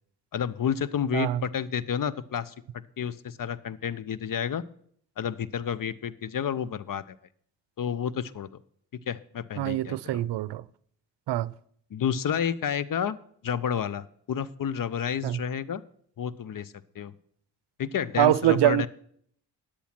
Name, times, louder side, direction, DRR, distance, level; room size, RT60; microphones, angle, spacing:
voice 1, 0.3-2.5 3.0-4.6 5.2-7.0 7.8-8.5 9.1-10.2 11.9-13.2 13.4-15.8 16.2-17.1 17.8-18.9, left 8 dB, 45° left, 0.8 m, -30 dB
voice 2, 9.6-10.6 11.3-11.5 15.2-15.4 18.2-18.9, right 14 dB, 65° right, 0.6 m, -24 dB
10.0 x 8.3 x 5.9 m
supercardioid pair, 55°, 46 cm